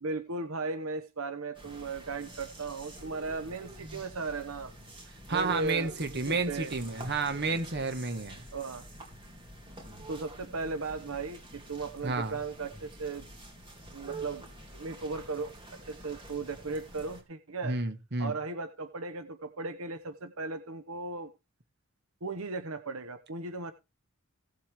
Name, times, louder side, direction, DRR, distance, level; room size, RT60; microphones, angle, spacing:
voice 1, 0.0-4.7 5.3-5.9 6.3-6.7 8.5-8.9 10.1-13.3 13.9-14.4 14.7-17.8 18.2-21.3 22.2-23.7, right 3 dB, 80° right, 1.0 m, -36 dB
sound 1, 1.5-17.2, right 2 dB, 25° right, 3.2 m, -47 dB
voice 2, 5.3-8.4 12.0-12.4 17.6-18.4, right 3 dB, 50° right, 1.6 m, -31 dB
17.0 x 7.7 x 3.5 m
head